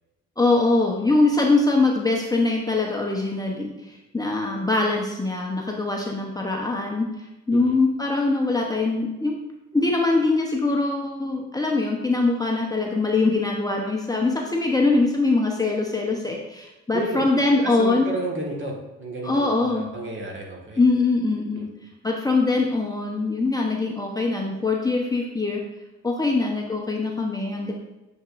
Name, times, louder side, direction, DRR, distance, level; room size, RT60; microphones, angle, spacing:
voice 1, 0.4-7.1 7.5-9.4 9.7-18.1 19.2-19.9 20.8-21.7 22.0-25.6 26.0-27.7, left 3 dB, 10° left, -1 dB, 0.9 m, -22 dB
voice 2, 16.9-17.2 17.6-20.8 21.5-21.6, right 2 dB, 40° right, -1 dB, 1.7 m, -32 dB
7.3 x 5.2 x 2.5 m, 1.0 s
cardioid pair, 90°, 30 cm